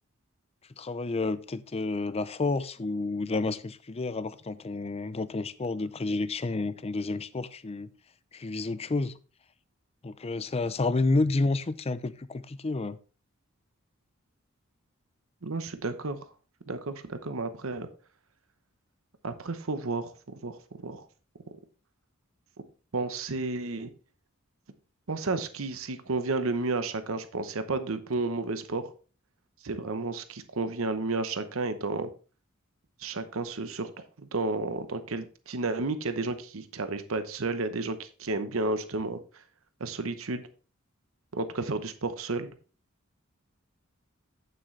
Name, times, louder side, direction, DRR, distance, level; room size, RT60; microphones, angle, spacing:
voice 1, 0.8-7.9 8.3-9.1 10.0-13.0, left 3 dB, 30° left, 14 dB, 0.5 m, -30 dB
voice 2, 15.4-16.2 16.7-17.9 19.2-21.0 22.9-23.9 25.1-28.8 29.6-32.1 33.0-39.2 39.8-40.5 41.3-42.5, right 3 dB, 75° right, 10 dB, 0.9 m, -32 dB
8.9 x 7.6 x 3.3 m, 0.36 s
head